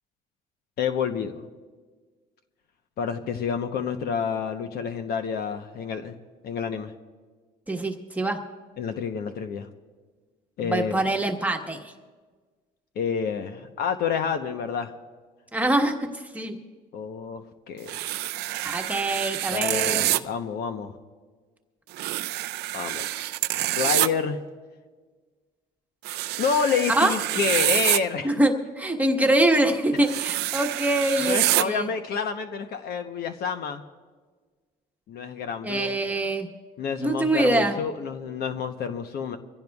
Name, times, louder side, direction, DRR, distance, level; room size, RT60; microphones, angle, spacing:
voice 1, 0.8-1.5 3.0-6.2 6.4-6.9 8.8-9.7 10.6-11.1 13.0-14.9 16.9-17.9 19.5-20.9 22.7-23.2 23.5-24.4 26.4-28.3 31.2-33.8 35.1-35.9 36.8-39.4, left 6 dB, 70° left, 7 dB, 0.9 m, -29 dB
voice 2, 7.7-8.4 10.6-11.9 15.5-16.5 18.6-20.1 26.9-27.1 28.2-31.9 35.6-36.5 37.0-37.8, right 1 dB, 10° right, 2 dB, 1.3 m, -24 dB
sound 1, 17.9-20.2 21.9-24.1 26.0-28.0 30.0-31.6, right 16 dB, 80° right, 0.5 m, -26 dB
24.5 x 16.0 x 2.4 m, 1.4 s
cardioid pair, 110°, 17 cm